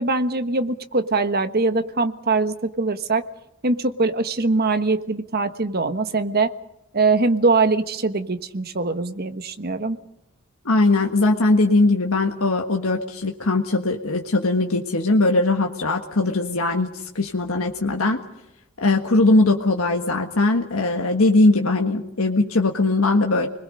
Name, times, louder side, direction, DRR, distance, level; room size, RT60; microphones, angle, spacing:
voice 1, 0.0-3.2 3.6-6.5 6.9-10.0, right 3 dB, 45° right, 9 dB, 1.3 m, -22 dB
voice 2, 10.6-18.2 18.8-23.5, left 2 dB, 80° left, 2 dB, 1.6 m, -20 dB
29.5 x 21.0 x 5.3 m, 0.87 s
head